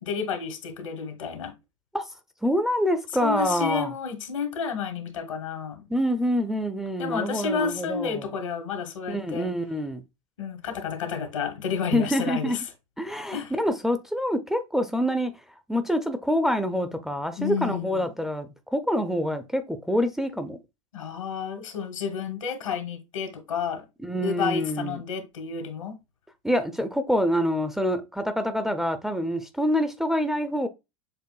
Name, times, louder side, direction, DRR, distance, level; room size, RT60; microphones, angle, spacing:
voice 1, 0.0-1.5 3.2-5.9 7.0-9.5 10.4-12.6 13.3-13.5 17.4-18.0 20.9-23.8 24.2-26.0, left 6 dB, 75° left, 1.2 m, -31 dB
voice 2, 2.4-3.9 5.9-8.3 9.1-10.0 11.9-12.6 13.0-15.3 15.7-20.6 24.0-25.0 26.4-30.7, equal, 5° right, 0.4 m, -26 dB
6.7 x 2.5 x 2.3 m
figure-of-eight pair, 90°, 17 cm